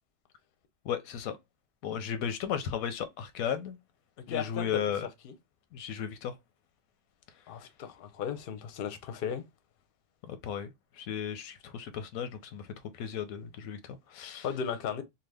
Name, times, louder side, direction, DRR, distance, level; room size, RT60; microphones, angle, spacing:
voice 1, 0.8-1.4 1.8-3.8 4.3-5.1 5.7-6.3 10.2-12.7 12.9-14.5, left 8 dB, 90° left, 1.0 m, -35 dB
voice 2, 4.3-4.8 5.2-5.3 7.5-9.4 14.4-15.0, left 7 dB, 55° left, 0.6 m, -35 dB
2.8 x 2.3 x 3.3 m
omnidirectional pair, 1.4 m